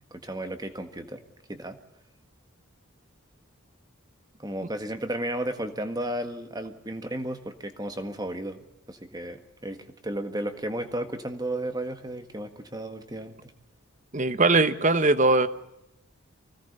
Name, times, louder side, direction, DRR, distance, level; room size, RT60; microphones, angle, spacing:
voice 1, 0.1-1.2 1.5-1.8 4.4-13.5, right 1 dB, 20° right, 7 dB, 1.6 m, -34 dB
voice 2, 14.1-15.5, right 3 dB, 35° right, 13 dB, 1.0 m, -20 dB
24.5 x 17.5 x 6.7 m, 0.89 s
head